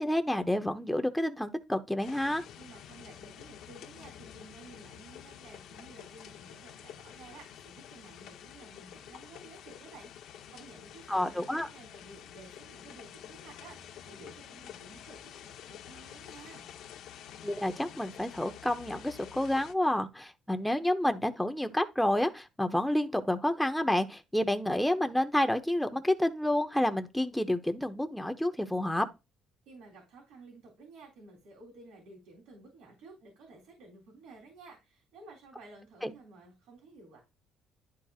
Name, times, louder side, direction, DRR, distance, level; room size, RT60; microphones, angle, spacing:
voice 1, 0.0-2.4 11.1-11.7 17.4-29.1 36.0-36.1, left 1 dB, 5° left, 0.9 m, -29 dB
sound 1, 2.0-19.7, left 10 dB, 75° left, 0.9 m, -49 dB
voice 2, 2.6-16.7 29.7-37.2, right 3 dB, 90° right, 3.5 m, -53 dB
11.5 x 4.5 x 2.4 m
cardioid pair, 115°, 0 cm